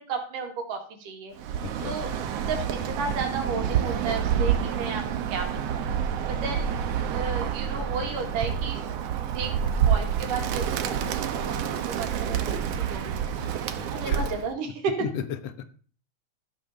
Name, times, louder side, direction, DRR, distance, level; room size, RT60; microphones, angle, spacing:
voice 1, 0.0-2.1 2.5-2.6 2.9-5.0 5.3-5.8 6.3-6.7 7.1-8.8 9.4-9.5 9.8-14.9, right 4 dB, 85° right, 3 dB, 3.8 m, -33 dB
Bird, 1.4-14.5, right 8 dB, 65° right, 1.7 m, -28 dB
voice 2, 1.6-2.0 4.6-4.9 13.8-14.3 14.7-14.8 15.0-15.6, left 7 dB, 60° left, 9 dB, 2.1 m, -36 dB
14.0 x 5.8 x 6.7 m, 0.42 s
omnidirectional pair, 3.7 m